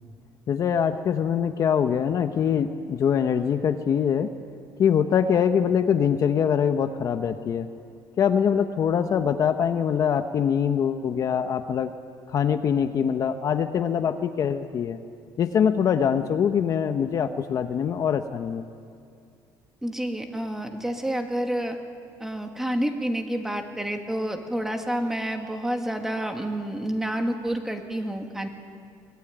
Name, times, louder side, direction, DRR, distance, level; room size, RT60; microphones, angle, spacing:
voice 1, 0.5-4.3 4.8-7.7 8.2-11.9 12.3-15.0 15.4-18.6, left 7 dB, 40° left, 8 dB, 0.9 m, -23 dB
voice 2, 19.8-21.8 22.2-28.5, right 1 dB, 5° right, 4 dB, 1.9 m, -29 dB
24.0 x 19.0 x 9.2 m, 2.3 s
cardioid pair, 145°, 9 cm